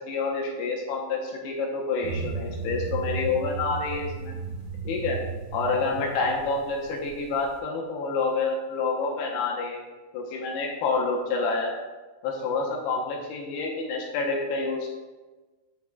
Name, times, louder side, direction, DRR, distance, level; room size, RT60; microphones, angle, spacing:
voice 1, 0.0-4.3 4.8-5.2 5.5-9.8 10.1-11.7 12.2-14.9, left 4 dB, 75° left, -1 dB, 2.6 m, -28 dB
sound 1, 2.0-7.5, right 5 dB, 65° right, 2.9 m, -35 dB
11.0 x 5.9 x 2.3 m, 1.2 s
omnidirectional pair, 5.4 m